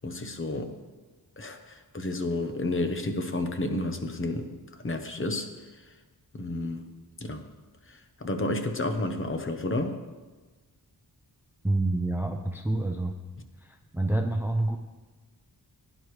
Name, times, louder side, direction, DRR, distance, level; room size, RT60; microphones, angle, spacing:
voice 1, 0.0-0.7 1.4-5.5 6.3-6.9 7.2-7.4 7.9-10.0, left 2 dB, 30° left, 6 dB, 0.9 m, -31 dB
voice 2, 11.6-13.2 13.6-14.8, right 2 dB, 5° right, 5 dB, 0.5 m, -28 dB
16.5 x 9.9 x 3.2 m, 1.3 s
wide cardioid pair, 165°, 38 cm